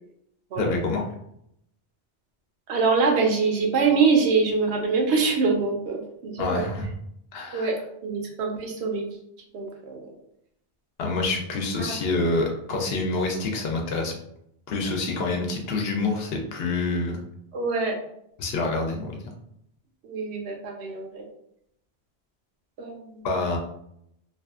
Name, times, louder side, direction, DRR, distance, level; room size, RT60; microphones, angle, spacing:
voice 1, 0.6-1.1 6.4-6.9 7.3-7.7 11.0-14.1 14.7-17.2 18.4-19.1 23.2-23.6, left 3 dB, 70° left, 1 dB, 0.7 m, -27 dB
voice 2, 2.7-6.6 7.5-7.8 8.0-9.1 9.5-10.1 11.8-12.0 17.5-17.9 20.0-21.2 22.8-23.5, right 4 dB, 80° right, 1 dB, 0.9 m, -24 dB
2.6 x 2.3 x 2.4 m, 0.75 s
omnidirectional pair, 1.1 m